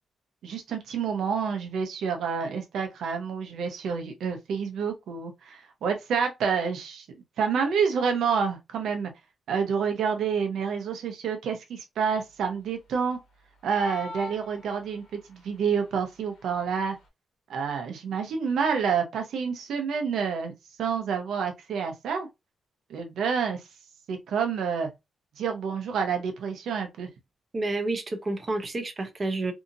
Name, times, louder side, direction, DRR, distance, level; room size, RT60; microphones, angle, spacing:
voice 1, 0.4-7.1 7.4-9.1 9.5-13.2 13.6-17.0 17.5-20.5 20.8-22.3 22.9-23.6 24.1-24.9 25.4-27.1, right 6 dB, 85° right, 0.6 m, -28 dB
sound 1, 13.6-15.1, left 1 dB, 90° left, 1.0 m, -40 dB
voice 2, 27.5-29.5, right 2 dB, 25° right, 0.6 m, -29 dB
2.8 x 2.5 x 2.6 m
wide cardioid pair, 150°, 0 cm